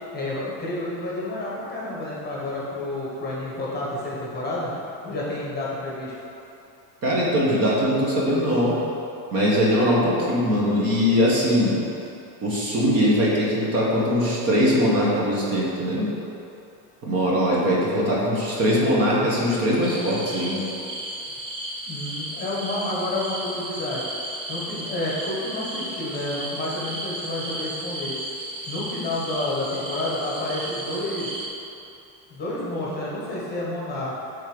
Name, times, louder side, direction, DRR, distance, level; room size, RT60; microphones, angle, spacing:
voice 1, 0.1-4.7 5.0-6.1 21.9-24.0 24.5-28.2 28.7-31.3 32.3-34.1, left 1 dB, 20° left, -6 dB, 1.2 m, -30 dB
voice 2, 7.0-8.8 9.3-11.8 12.4-16.1 17.0-20.7, equal, 35° right, -5 dB, 1.0 m, -21 dB
sound 1, 19.8-31.5, right 1 dB, 15° right, 0.3 m, -34 dB
6.3 x 3.7 x 5.0 m, 2.8 s
cardioid pair, 155°, 44 cm